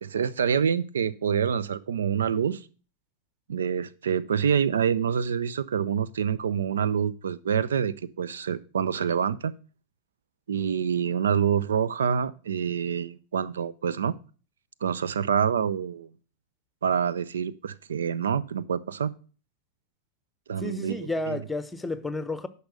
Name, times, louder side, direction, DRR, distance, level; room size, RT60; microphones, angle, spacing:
voice 1, 0.0-2.7 3.5-9.5 10.5-14.2 14.8-16.1 16.8-19.1 20.5-21.0 21.3-21.4, right 7 dB, 65° right, 0.4 m, -26 dB
voice 2, 20.6-22.5, left 2 dB, 10° left, 0.8 m, -31 dB
10.5 x 5.5 x 6.3 m
figure-of-eight pair, 90°, 0 cm